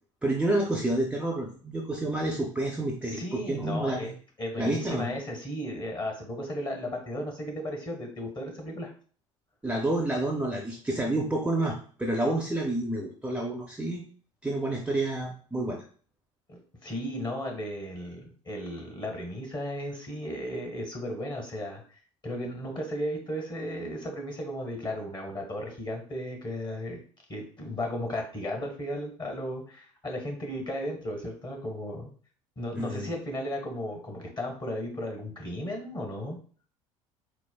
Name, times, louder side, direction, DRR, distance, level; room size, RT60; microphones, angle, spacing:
voice 1, 0.2-4.1 4.6-5.1 9.6-14.0 14.4-15.8 32.7-33.1, right 1 dB, 5° right, -1 dB, 0.6 m, -29 dB
voice 2, 3.0-4.1 4.4-8.9 16.5-21.8 22.2-27.0 27.3-32.1 32.6-36.4, equal, 25° left, 2 dB, 1.3 m, -35 dB
4.5 x 2.0 x 2.2 m, 0.43 s
figure-of-eight pair, 65°, 17 cm